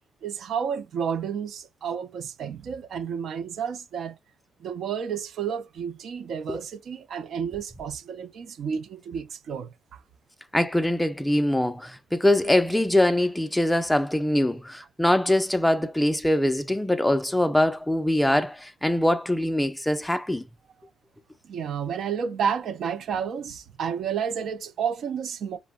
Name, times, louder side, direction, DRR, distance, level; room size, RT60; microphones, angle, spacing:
voice 1, 0.2-4.2 4.6-10.0 21.4-25.6, right 7 dB, 65° right, 0.4 m, -31 dB
voice 2, 10.5-20.4, left 1 dB, 5° left, 0.3 m, -23 dB
4.3 x 2.1 x 2.2 m
cardioid pair, 90°, 0 cm